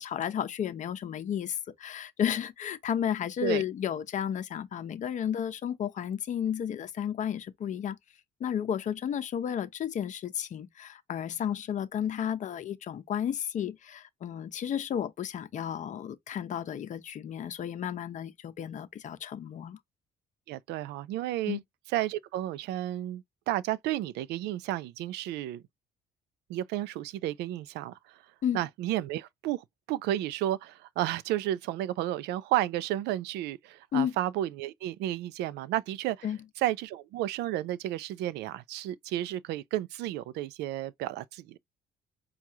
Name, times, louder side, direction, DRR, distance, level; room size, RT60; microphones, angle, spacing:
voice 1, 0.0-8.0 8.4-19.8 21.5-21.6 28.4-28.6 33.9-34.2 36.2-36.4, left 9 dB, 45° left, 0.7 m, -32 dB
voice 2, 20.5-21.6 21.9-25.6 26.5-28.2 28.5-36.3 36.6-41.6, right 14 dB, 80° right, 0.4 m, -32 dB
4.6 x 2.3 x 2.7 m
cardioid pair, 110°, 17 cm